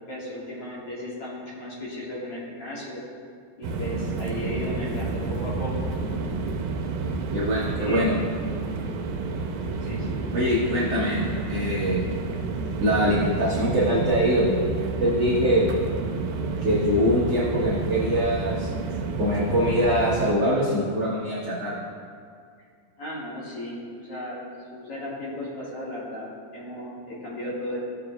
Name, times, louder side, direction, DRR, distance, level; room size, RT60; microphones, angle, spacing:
voice 1, 0.1-3.0 3.6-5.9 7.6-8.0 9.8-10.9 23.0-27.8, left 1 dB, 45° left, -7 dB, 2.5 m, -35 dB
sound 1, 3.6-20.3, right 3 dB, 85° right, 2.5 m, -30 dB
voice 2, 7.3-8.2 10.3-12.0 12.8-15.7 16.6-18.7 19.2-21.8, equal, 55° right, -8 dB, 1.9 m, -23 dB
17.0 x 6.9 x 2.4 m, 2.2 s
omnidirectional pair, 4.1 m